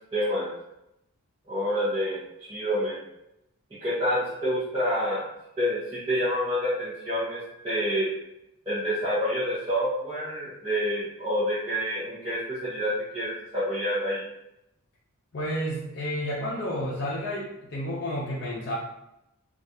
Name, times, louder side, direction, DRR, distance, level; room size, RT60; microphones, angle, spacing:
voice 1, 0.1-0.5 1.5-3.0 3.8-5.2 5.6-8.1 8.7-14.2, equal, 20° right, -14 dB, 0.9 m, -28 dB
voice 2, 15.3-18.8, equal, 50° left, -5 dB, 0.5 m, -31 dB
3.1 x 2.4 x 2.7 m, 0.86 s
head